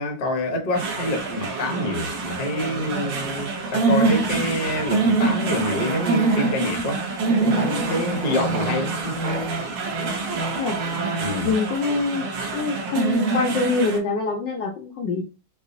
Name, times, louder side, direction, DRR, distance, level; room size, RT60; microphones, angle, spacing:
voice 1, 0.0-7.0 7.4-9.2 11.2-11.5, left 1 dB, 40° left, 0.7 m, -27 dB
sound 1, 0.7-14.0, right 3 dB, 65° right, 1.4 m, -25 dB
sound 2, 2.6-6.8 7.2-11.5, right 2 dB, 90° right, 1.8 m, -32 dB
voice 2, 11.4-12.3 12.5-15.2, left 4 dB, 70° left, 1.1 m, -24 dB
4.8 x 2.3 x 2.6 m
omnidirectional pair, 2.3 m